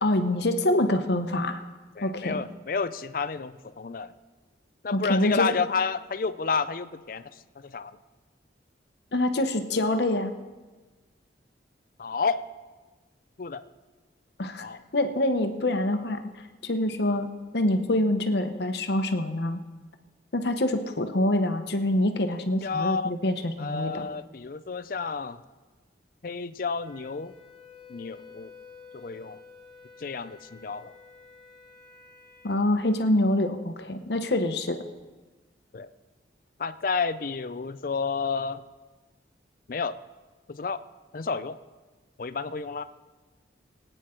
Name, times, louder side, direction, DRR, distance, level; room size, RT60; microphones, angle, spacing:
voice 1, 0.0-1.6 2.0-2.4 4.9-5.5 9.1-10.3 14.4-14.7 14.9-16.2 16.6-19.6 20.3-24.1 32.4-34.8, left 1 dB, 65° left, 7 dB, 0.9 m, -25 dB
voice 2, 2.0-4.1 4.8-8.0 12.0-12.4 13.4-13.6 14.6-14.8 22.4-23.1 23.6-25.4 26.2-27.3 27.9-28.5 28.9-29.4 30.0-30.9 35.7-35.9 36.6-38.6 39.7-40.0 40.5-40.8 41.1-41.6 42.2-42.8, left 5 dB, 50° left, 13 dB, 0.4 m, -31 dB
Wind instrument woodwind instrument, 26.8-32.5, left 5 dB, ahead, 2.9 m, -51 dB
22.0 x 9.1 x 3.8 m, 1.3 s
head